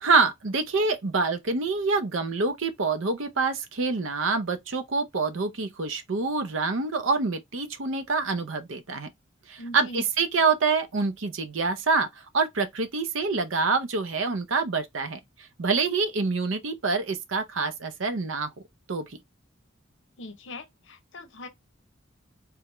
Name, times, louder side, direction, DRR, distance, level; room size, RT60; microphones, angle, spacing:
voice 1, 0.0-9.1 9.5-15.2 15.6-18.5 18.9-19.2, right 4 dB, 85° right, 0.7 m, -26 dB
voice 2, 9.6-10.0 20.2-21.5, left 1 dB, 70° left, 0.7 m, -41 dB
3.5 x 3.0 x 3.2 m
head